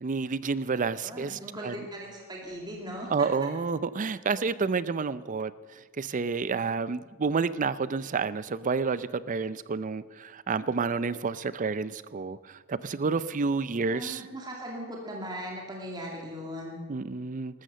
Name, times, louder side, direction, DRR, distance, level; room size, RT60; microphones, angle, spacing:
voice 1, 0.0-1.8 3.1-14.3 16.9-17.6, right 4 dB, 35° right, 17 dB, 0.5 m, -30 dB
voice 2, 0.9-3.3 13.7-16.7, equal, 20° right, -1 dB, 2.4 m, -39 dB
14.0 x 13.0 x 6.8 m, 1.3 s
head